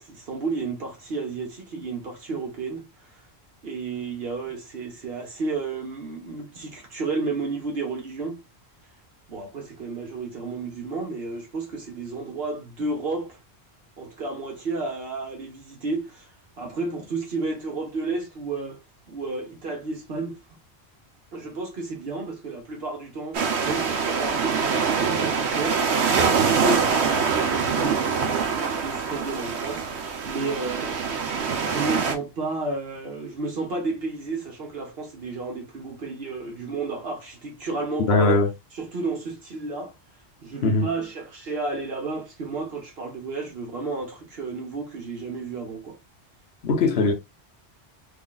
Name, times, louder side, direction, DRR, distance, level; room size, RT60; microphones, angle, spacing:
voice 1, 0.0-3.2 3.6-8.4 9.3-13.4 14.0-18.8 19.1-20.4 21.3-31.0 31.6-38.4 38.7-39.9 40.4-46.0, right 3 dB, 65° right, 1.1 m, -32 dB
sound 1, 23.3-32.1, right 6 dB, 80° right, 1.0 m, -24 dB
voice 2, 38.1-38.5 40.6-40.9 46.6-47.1, left 3 dB, 70° left, 1.1 m, -20 dB
3.3 x 2.4 x 3.8 m
omnidirectional pair, 1.1 m